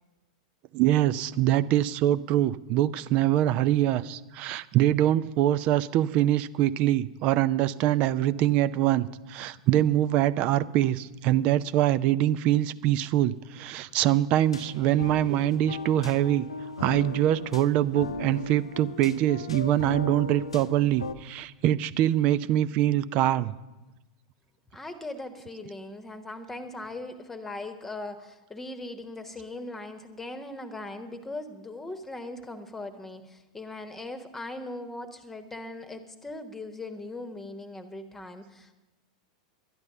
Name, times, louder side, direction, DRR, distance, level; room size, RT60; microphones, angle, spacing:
voice 1, 0.7-16.5 16.8-23.5, right 13 dB, 40° right, 18 dB, 0.5 m, -24 dB
sound 1, 14.5-21.1, left 4 dB, 80° left, 0.7 m, -37 dB
voice 2, 24.7-38.7, left 2 dB, 10° left, 8 dB, 1.3 m, -39 dB
12.0 x 10.5 x 6.7 m, 1.0 s
figure-of-eight pair, 90°, 3 cm